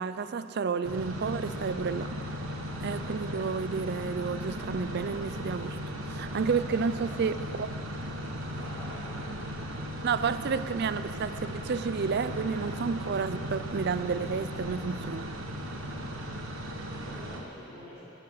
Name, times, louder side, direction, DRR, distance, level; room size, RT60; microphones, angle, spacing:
voice 1, 0.0-2.2 2.8-7.7 10.0-15.3, right 5 dB, 55° right, 12 dB, 0.4 m, -31 dB
sound 1, 0.8-17.4, equal, 75° right, 1.2 m, -37 dB
voice 2, 8.5-9.1 16.7-18.1, equal, 35° left, -10 dB, 3.7 m, -47 dB
10.5 x 9.9 x 7.7 m, 2.8 s
head